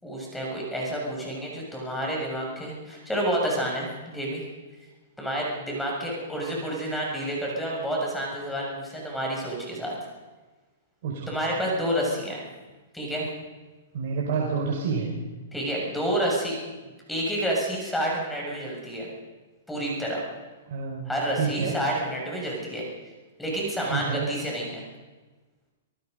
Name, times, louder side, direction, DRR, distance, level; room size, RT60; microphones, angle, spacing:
voice 1, 0.0-4.4 5.2-9.9 11.3-12.4 12.9-13.3 15.5-16.5 17.1-19.1 19.7-20.2 21.0-22.8 23.4-24.9, right 1 dB, 5° left, -2 dB, 6.8 m, -29 dB
voice 2, 13.9-15.1 20.7-21.1 21.4-21.8 23.9-24.3, right 5 dB, 55° right, -1 dB, 5.4 m, -28 dB
27.5 x 19.0 x 5.4 m, 1.2 s
hypercardioid pair, 150°, 0 cm